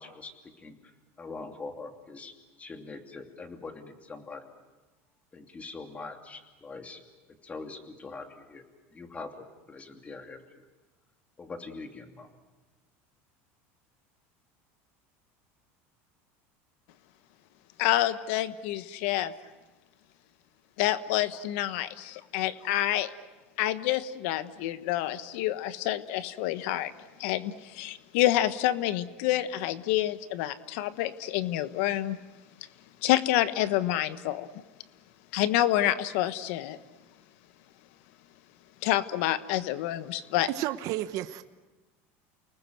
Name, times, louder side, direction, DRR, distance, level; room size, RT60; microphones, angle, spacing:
voice 1, 0.0-4.5 5.3-7.0 7.4-8.6 8.9-10.4 11.4-12.4, left 3 dB, 20° left, 5 dB, 2.8 m, -43 dB
voice 2, 17.8-19.3 20.8-23.1 23.6-26.9 27.2-32.2 33.0-34.5 35.3-36.8 38.8-40.5, left 14 dB, 75° left, 13 dB, 1.2 m, -28 dB
voice 3, 40.5-41.4, right 14 dB, 55° right, 10 dB, 1.0 m, -32 dB
29.5 x 20.0 x 7.8 m, 1.2 s
supercardioid pair, 125°, 7 cm